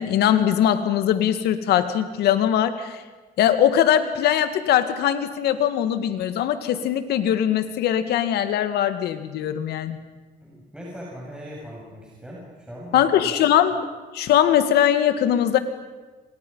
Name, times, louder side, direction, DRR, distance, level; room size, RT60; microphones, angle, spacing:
voice 1, 0.0-3.0 3.4-10.0 12.9-13.8 14.1-15.6, left 10 dB, 75° left, 10 dB, 2.0 m, -21 dB
voice 2, 10.4-13.4, equal, 5° right, -5 dB, 7.2 m, -39 dB
29.0 x 25.5 x 5.6 m, 1.3 s
cardioid pair, 110°, 17 cm